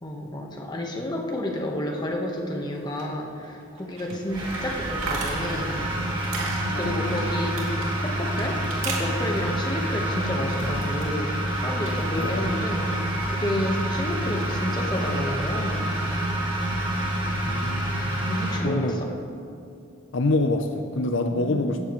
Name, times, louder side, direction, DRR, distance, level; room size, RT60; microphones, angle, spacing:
voice 1, 0.0-5.8 6.8-11.3 11.6-15.9 18.2-19.1 21.3-21.8, left 1 dB, 20° left, 1 dB, 1.3 m, -30 dB
sound 1, 2.6-11.1 11.4-12.3, right 3 dB, 85° right, 2.7 m, -38 dB
sound 2, 4.3-18.6, right 1 dB, 20° right, 2.0 m, -27 dB
voice 2, 6.7-7.3 12.1-12.5 17.5-18.1 18.6-18.9 20.1-21.8, left 2 dB, 65° left, 6 dB, 0.6 m, -26 dB
17.0 x 14.0 x 3.2 m, 2.5 s
head